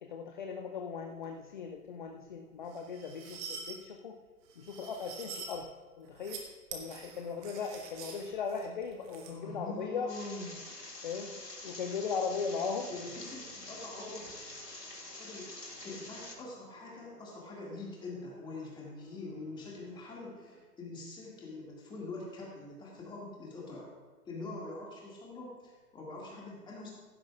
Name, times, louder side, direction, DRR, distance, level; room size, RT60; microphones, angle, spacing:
voice 1, 0.0-4.1 4.6-5.7 6.0-6.4 6.7-10.1 11.0-11.3 11.6-12.9, left 5 dB, 30° left, 4 dB, 0.6 m, -38 dB
sound 1, 2.7-3.8 4.5-5.6 6.1-6.4 6.7-9.3, right 6 dB, 25° right, 1.3 m, -46 dB
voice 2, 9.2-10.5 12.9-14.4 15.2-23.9 24.3-26.9, left 2 dB, 10° left, -3 dB, 2.1 m, -44 dB
sound 2, 10.1-16.4, left 2 dB, 85° left, 2.0 m, -46 dB
sound 3, 12.7-20.6, right 3 dB, 55° right, 3.5 m, -60 dB
16.0 x 11.5 x 2.4 m, 1.4 s
figure-of-eight pair, 125°, 47 cm